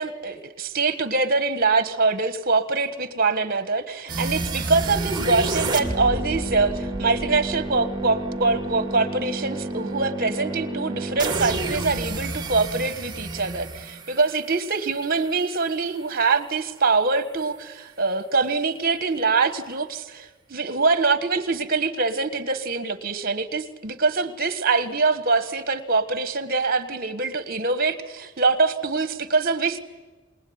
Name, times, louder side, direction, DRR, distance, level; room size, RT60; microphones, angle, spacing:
voice 1, 0.0-29.8, right 4 dB, 45° right, 12 dB, 1.5 m, -24 dB
sound 1, 4.1-15.0, right 2 dB, 20° right, 2.3 m, -29 dB
26.5 x 20.5 x 9.6 m, 1.3 s
head